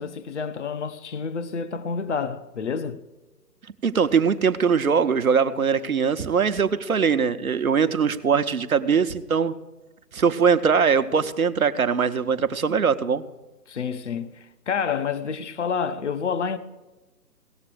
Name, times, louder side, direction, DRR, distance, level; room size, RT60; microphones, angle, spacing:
voice 1, 0.0-3.0 13.7-16.6, left 6 dB, 45° left, 0.9 m, -29 dB
voice 2, 3.8-9.5 10.1-13.2, right 6 dB, 60° right, 1.0 m, -21 dB
17.0 x 7.5 x 6.2 m
figure-of-eight pair, 145°, 47 cm